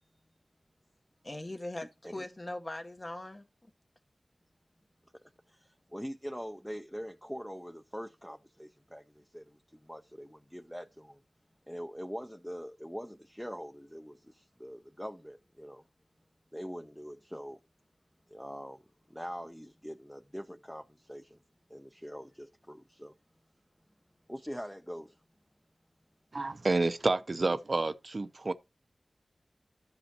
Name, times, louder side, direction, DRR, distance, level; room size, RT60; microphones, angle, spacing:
voice 1, 1.2-3.7, left 1 dB, 30° left, 1.1 m, -41 dB
voice 2, 5.1-11.2 11.7-15.8 16.5-17.6 18.3-18.8 19.1-21.4 21.7-23.1 24.3-25.2, equal, 5° left, 0.6 m, -43 dB
voice 3, 26.3-28.5, right 3 dB, 50° right, 0.6 m, -29 dB
13.0 x 5.3 x 2.9 m
wide cardioid pair, 65°, 0 cm